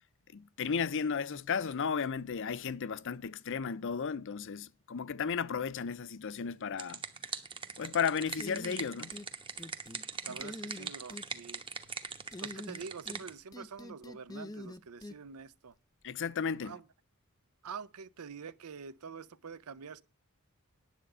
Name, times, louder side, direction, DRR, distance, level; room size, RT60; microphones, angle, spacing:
voice 1, 0.3-7.0 7.8-9.1 16.0-16.8, left 6 dB, 60° left, 0.6 m, -34 dB
sound 1, 6.5-13.3, right 4 dB, 25° right, 1.1 m, -42 dB
sound 2, 8.4-9.3 9.6-10.0 10.4-11.3 12.3-13.2 13.5-15.2, left 2 dB, 15° left, 0.5 m, -44 dB
voice 2, 10.2-11.6 12.4-15.7 16.6-16.9 17.6-20.0, right 5 dB, 85° right, 0.7 m, -46 dB
10.0 x 7.7 x 5.5 m
head